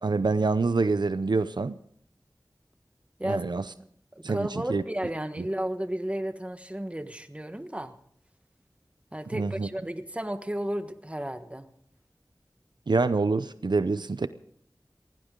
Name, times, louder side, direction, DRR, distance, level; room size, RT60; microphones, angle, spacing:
voice 1, 0.0-1.8 3.2-3.6 4.2-4.8 9.3-9.7 12.9-14.3, right 3 dB, 85° right, 0.6 m, -26 dB
voice 2, 4.1-7.9 9.1-11.7, right 1 dB, 15° right, 1.3 m, -33 dB
20.0 x 17.0 x 3.8 m
wide cardioid pair, 50°, 7 cm